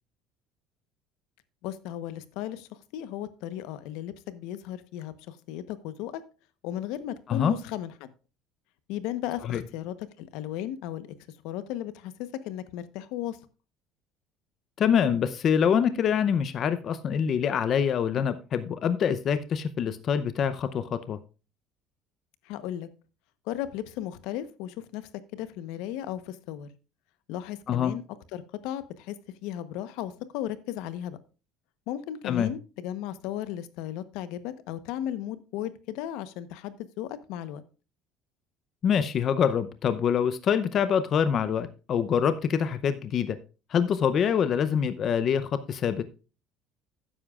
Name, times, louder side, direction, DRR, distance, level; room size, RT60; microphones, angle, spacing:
voice 1, 1.6-6.2 6.6-8.1 8.9-11.1 11.4-13.4 22.5-22.9 23.5-26.7 27.3-28.0 28.3-29.2 29.4-31.2 31.9-37.6, left 12 dB, 80° left, 13 dB, 0.9 m, -35 dB
voice 2, 14.8-21.2 27.7-27.9 32.2-32.5 38.8-43.4 43.7-46.0, left 7 dB, 40° left, 12 dB, 0.6 m, -25 dB
12.5 x 9.9 x 2.4 m, 0.32 s
cardioid pair, 155°, 0 cm